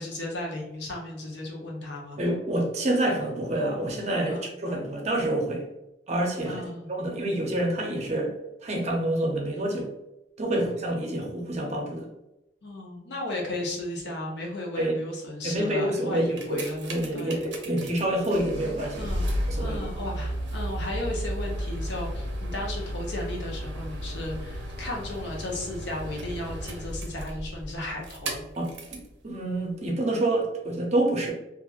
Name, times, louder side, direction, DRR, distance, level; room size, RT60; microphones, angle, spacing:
voice 1, 0.0-2.2 4.3-4.4 6.4-6.9 10.5-10.8 12.6-17.4 18.9-19.3 19.6-28.4, left 1 dB, 75° left, -1 dB, 0.7 m, -35 dB
voice 2, 2.2-5.6 6.1-6.6 6.9-8.3 8.6-9.9 10.4-12.1 14.7-14.9 15.4-16.6 16.9-19.1 19.5-19.8 28.6-31.3, right 1 dB, 40° right, 1 dB, 0.5 m, -27 dB
sound 1, 16.1-29.1 29.8-29.9, equal, 85° right, 0.5 m, -34 dB
2.9 x 2.4 x 2.4 m, 0.91 s
head